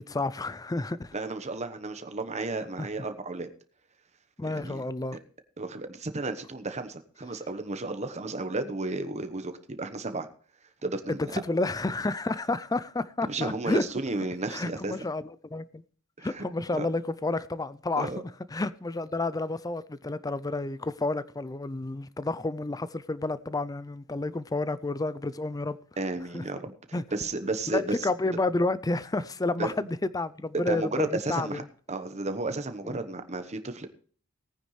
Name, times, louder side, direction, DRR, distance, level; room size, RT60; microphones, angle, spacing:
voice 1, 0.0-1.1 2.8-2.9 4.4-5.2 11.2-13.9 14.5-15.8 16.2-18.1 18.5-25.8 26.3-26.4 26.9-27.0 27.7-31.6 32.9-33.0, left 2 dB, 15° left, 0.4 m, -30 dB
voice 2, 1.1-3.5 4.5-4.8 5.6-10.3 10.8-11.3 13.3-14.9 16.2-16.4 16.7-16.9 18.0-18.2 26.0-26.7 27.1-28.1 29.6-29.7 30.5-31.6 31.9-33.9, right 2 dB, 30° right, 1.1 m, -33 dB
18.0 x 9.6 x 3.2 m
head